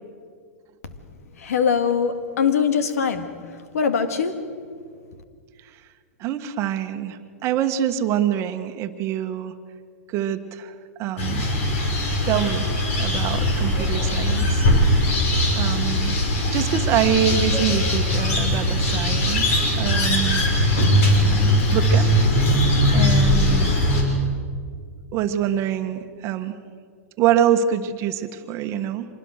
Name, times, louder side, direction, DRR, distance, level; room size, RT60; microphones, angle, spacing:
voice 1, 1.4-4.4, left 6 dB, 80° left, 9 dB, 2.0 m, -22 dB
voice 2, 6.2-9.5 10.1-11.4 12.2-12.7 13.0-14.7 15.6-16.2 16.5-19.5 19.8-20.5 21.7-22.1 22.9-23.9 25.1-26.5 27.2-29.1, right 10 dB, 35° right, 8 dB, 1.3 m, -25 dB
sound 1, 11.2-24.0, left 1 dB, 60° left, 5.8 m, -20 dB
25.5 x 20.5 x 6.5 m, 2.1 s
hypercardioid pair, 130°, 8 cm